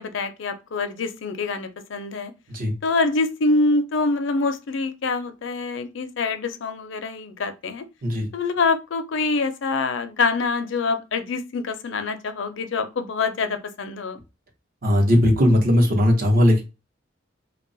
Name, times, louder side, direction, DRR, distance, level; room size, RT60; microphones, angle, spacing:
voice 1, 0.0-2.3 2.8-7.8 8.3-14.2, left 3 dB, 70° left, 0.5 m, -25 dB
voice 2, 14.8-16.6, left 1 dB, 50° right, 0.8 m, -18 dB
2.3 x 2.0 x 3.8 m
head